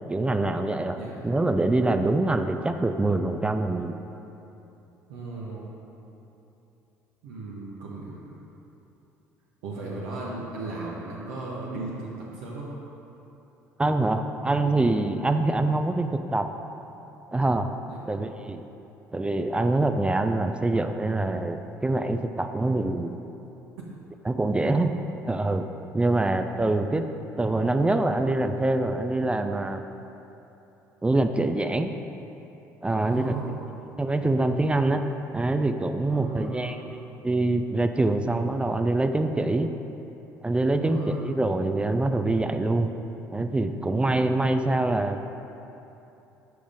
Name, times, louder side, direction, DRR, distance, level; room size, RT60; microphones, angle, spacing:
voice 1, 0.0-1.0 1.2-3.9 13.8-16.5 17.3-17.7 18.1-18.6 19.1-23.2 24.3-24.9 25.2-25.7 25.9-27.1 27.4-29.8 31.0-31.9 32.8-33.3 34.0-35.0 35.3-39.7 40.4-42.9 43.3-45.2, right 2 dB, 10° right, 7 dB, 0.3 m, -25 dB
voice 2, 1.0-1.3 5.1-5.7 7.2-8.4 9.6-12.7 17.9-18.0 24.7-24.9 26.2-26.5 33.0-33.6 36.1-36.8 40.8-41.4, right 2 dB, 65° right, -5 dB, 0.8 m, -36 dB
7.0 x 4.9 x 3.5 m, 3.0 s
figure-of-eight pair, 55°, 9 cm